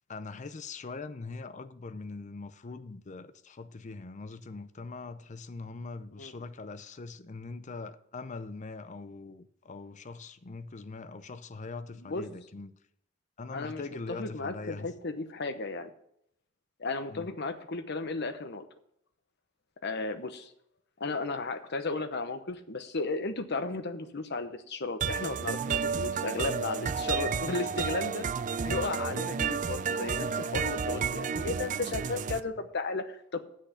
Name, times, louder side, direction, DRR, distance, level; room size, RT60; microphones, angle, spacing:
voice 1, 0.1-12.8 13.4-14.9 17.1-17.3, left 3 dB, 40° left, 0.6 m, -42 dB
voice 2, 13.5-13.8 14.1-15.9 16.8-18.7 19.8-20.5 21.0-28.3 28.6-33.5, left 3 dB, 60° left, 0.9 m, -34 dB
sound 1, 25.0-32.4, right 6 dB, 40° right, 0.4 m, -31 dB
7.8 x 6.4 x 8.1 m
head